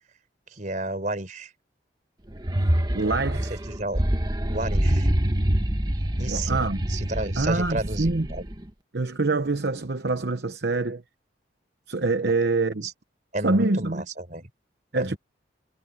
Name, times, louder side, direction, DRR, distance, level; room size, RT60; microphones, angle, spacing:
voice 1, 0.5-1.5 3.5-4.0 4.5-5.1 6.2-8.5 12.8-12.9 13.3-14.5 14.9-15.2, right 2 dB, 45° right, 5.0 m, -32 dB
sound 1, 2.3-8.6, equal, 20° right, 1.3 m, -25 dB
voice 2, 2.9-3.6 6.3-6.8 7.4-8.3 8.9-11.0 11.9-12.9 13.4-14.0 14.9-15.2, right 3 dB, 65° right, 0.9 m, -25 dB
head